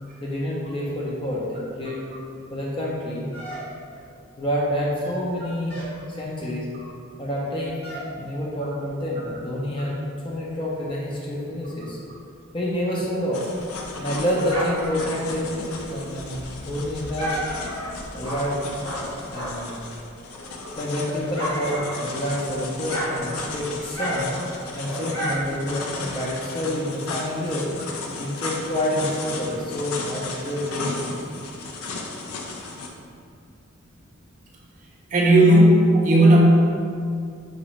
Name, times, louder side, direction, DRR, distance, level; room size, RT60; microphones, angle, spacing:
voice 1, 0.2-2.0 2.5-3.3 4.4-5.8 6.1-6.7 7.2-7.8 8.1-10.0 10.2-12.0 12.5-13.4 14.0-17.4 18.1-19.9 20.8-24.3 24.7-27.7 28.2-31.1, equal, 25° left, -4 dB, 0.4 m, -28 dB
sound 1, 3.3-4.1 4.9-5.3 5.7-6.0 7.8-8.2, right 1 dB, 45° left, 0.9 m, -38 dB
sound 2, 13.3-32.9, left 3 dB, 85° left, 0.4 m, -35 dB
Dog, 13.6-19.8 20.2-22.5 22.7-26.2, equal, 60° left, 1.2 m, -33 dB
voice 2, 35.1-36.4, right 1 dB, 35° right, -3 dB, 0.4 m, -14 dB
3.9 x 2.5 x 3.0 m, 2.3 s
head